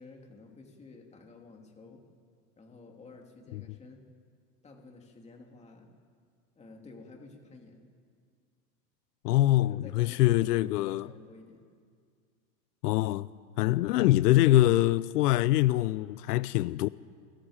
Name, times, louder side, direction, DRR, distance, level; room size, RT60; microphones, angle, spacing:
voice 1, 0.0-2.0 2.6-4.0 4.6-5.9 6.6-7.8 9.6-11.6, left 3 dB, 15° left, 2.4 m, -52 dB
voice 2, 9.2-11.1 12.8-13.3 13.6-16.9, left 15 dB, 85° left, 0.6 m, -24 dB
27.5 x 22.0 x 5.0 m
supercardioid pair, 150°, 46 cm